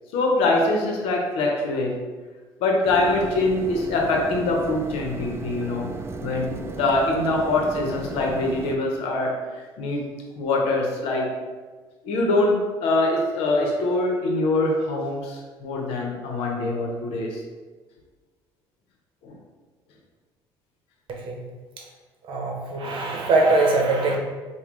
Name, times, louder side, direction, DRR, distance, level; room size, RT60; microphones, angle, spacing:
voice 1, 0.1-2.0 2.6-5.9 6.2-10.1 10.4-11.3 12.0-17.4 19.2-19.4, left 2 dB, 85° left, 1 dB, 0.8 m, -24 dB
sound 1, 2.8-8.8, right 4 dB, 25° right, 0.3 m, -35 dB
voice 2, 21.1-21.4 22.3-24.2, right 2 dB, 60° right, 0 dB, 0.8 m, -22 dB
5.1 x 2.2 x 3.1 m, 1.4 s
cardioid pair, 95°, 10 cm